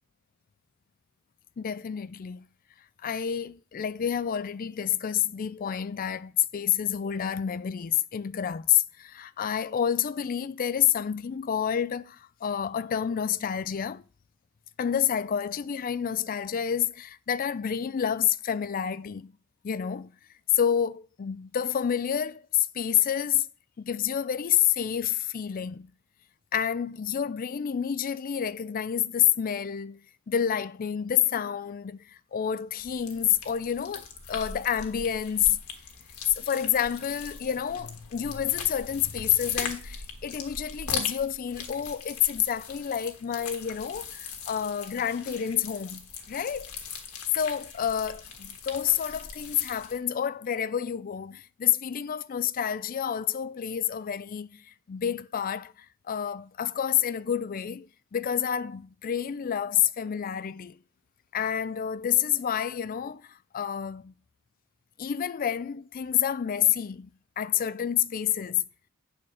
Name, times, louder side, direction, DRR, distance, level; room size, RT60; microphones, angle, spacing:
voice 1, 1.6-2.4 3.0-14.0 14.8-19.4 19.6-20.1 20.5-23.5 23.8-25.9 26.5-30.0 30.3-35.6 36.3-46.7 47.3-60.8 61.3-64.2 65.0-68.6, left 9 dB, 40° left, 0.4 m, -28 dB
sound 1, 32.8-50.0, left 6 dB, 85° left, 1.5 m, -40 dB
8.8 x 4.4 x 6.3 m
head